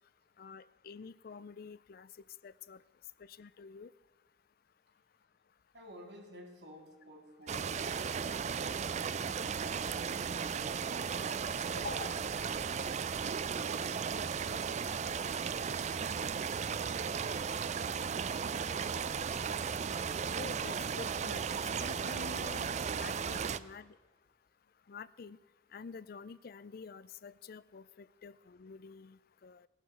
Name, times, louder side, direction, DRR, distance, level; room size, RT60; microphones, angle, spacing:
voice 1, 0.4-2.1 2.4-2.8 3.2-3.9 11.8-12.1 20.4-21.5 21.8-24.0 24.9-25.4 25.7-29.7, left 5 dB, 50° left, 17 dB, 0.4 m, -48 dB
voice 2, 5.7-16.4, equal, 60° right, 3 dB, 2.4 m, -55 dB
sound 1, 7.5-23.6, right 6 dB, 35° right, 0.4 m, -35 dB
16.5 x 12.0 x 4.6 m, 1.4 s
head